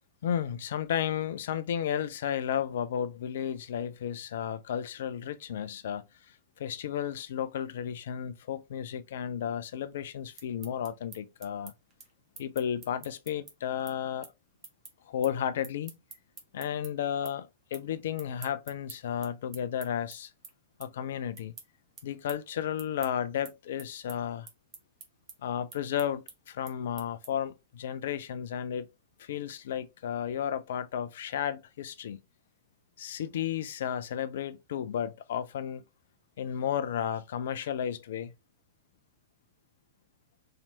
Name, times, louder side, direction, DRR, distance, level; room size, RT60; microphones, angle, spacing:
voice 1, 0.2-11.7 12.4-14.3 15.1-15.9 16.5-20.3 20.8-21.5 22.0-24.5 25.4-28.9 29.2-32.2 33.0-35.8 36.4-38.3, left 9 dB, 55° left, 0.3 m, -33 dB
sound 1, 10.4-16.9 17.2-17.9 18.1-27.5, right 6 dB, 30° right, 0.9 m, -49 dB
3.2 x 2.7 x 2.7 m
figure-of-eight pair, 95°, 0 cm